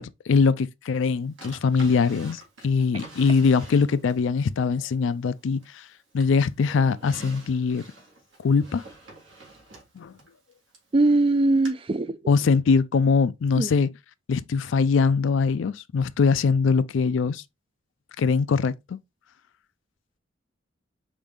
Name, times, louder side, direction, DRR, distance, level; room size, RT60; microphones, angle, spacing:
voice 1, 0.0-5.8 6.1-7.8 8.4-8.8 10.0-10.1 12.3-13.9 14.3-17.4 18.2-19.0, left 5 dB, 75° left, 0.4 m, -22 dB
Drawer open or close, 1.4-4.3 4.8-5.8 6.2-10.9 11.7-11.8, right 2 dB, 75° right, 2.0 m, -47 dB
voice 2, 10.9-12.2 13.6-13.7, right 2 dB, 30° right, 0.4 m, -21 dB
5.1 x 2.7 x 3.4 m
head